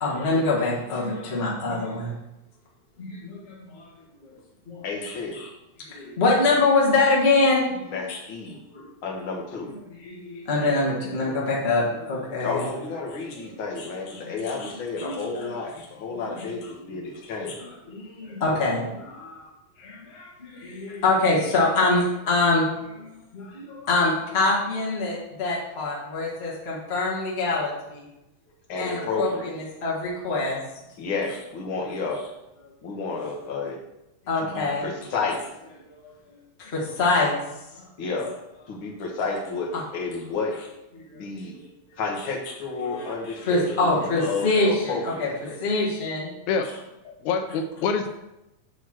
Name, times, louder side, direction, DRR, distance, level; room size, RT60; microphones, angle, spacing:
voice 1, 0.0-2.1 3.0-3.9 4.7-5.5 5.9-7.8 8.1-8.2 8.7-8.9 10.0-12.6 13.3-13.4 13.8-13.9 14.1-14.7 15.0-15.5 16.1-16.5 17.9-19.5 19.8-23.1 23.3-28.0 28.8-30.6 31.0-31.1 34.3-34.8 36.0-36.1 36.6-37.4 37.7-37.8 41.1-41.6 42.8-43.1 43.4-45.3 45.6-46.3, left 3 dB, 35° left, -5 dB, 1.1 m, -25 dB
voice 2, 4.8-5.4 7.9-8.6 9.0-9.7 12.4-17.6 28.7-29.5 31.0-32.2 32.8-33.8 34.4-35.4 38.0-38.3 38.7-40.5 41.1-41.5 42.0-45.6, left 4 dB, 55° left, 0 dB, 1.5 m, -31 dB
voice 3, 47.1-48.1, left 5 dB, 80° left, 6 dB, 1.9 m, -26 dB
8.0 x 3.0 x 6.2 m, 0.92 s
omnidirectional pair, 3.4 m